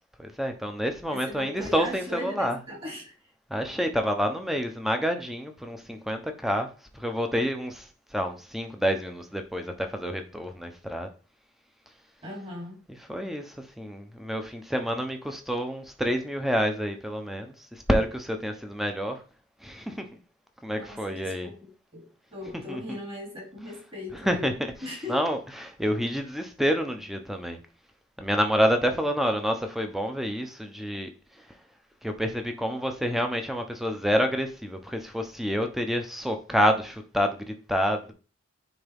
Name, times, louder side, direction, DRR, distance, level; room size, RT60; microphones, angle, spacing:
voice 1, 0.2-2.6 3.5-6.7 6.9-7.9 8.1-11.1 13.1-17.5 17.9-19.2 19.6-20.1 20.6-21.5 22.7-23.0 24.3-24.5 25.1-27.6 28.2-31.1 32.0-38.1, equal, ahead, 0.8 m, -28 dB
voice 2, 1.0-3.1 12.2-12.8 20.8-24.5 24.8-25.2, left 1 dB, 30° right, 2.7 m, -39 dB
9.3 x 3.6 x 3.5 m
head